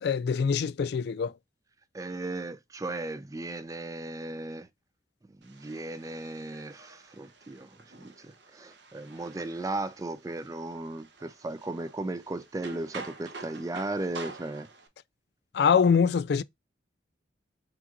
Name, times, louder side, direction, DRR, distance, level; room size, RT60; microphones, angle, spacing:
voice 1, 0.0-1.3 15.5-16.4, left 6 dB, 60° left, 0.3 m, -24 dB
voice 2, 1.9-4.7 5.3-14.7, right 2 dB, 20° right, 0.4 m, -36 dB
sound 1, 5.4-14.9, right 3 dB, 65° right, 0.8 m, -48 dB
6.0 x 2.4 x 2.8 m
head